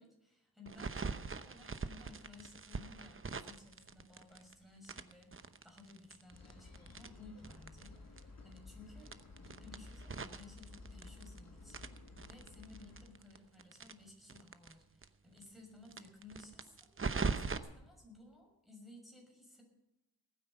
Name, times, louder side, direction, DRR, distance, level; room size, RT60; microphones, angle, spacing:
voice 1, 0.0-11.9 12.2-16.9 17.2-19.6, left 2 dB, ahead, 0 dB, 6.2 m, -57 dB
sound 1, 0.7-4.5 4.8-7.9 8.2-8.3 8.5-8.6 9.0-11.4 11.7-14.7 15.0-15.1 15.4-15.5 15.9-17.6, right 4 dB, 35° right, 0.9 m, -41 dB
sound 2, 6.3-13.1, left 3 dB, 45° left, 4.4 m, -54 dB
19.5 x 9.3 x 5.6 m, 0.94 s
wide cardioid pair, 100°, 37 cm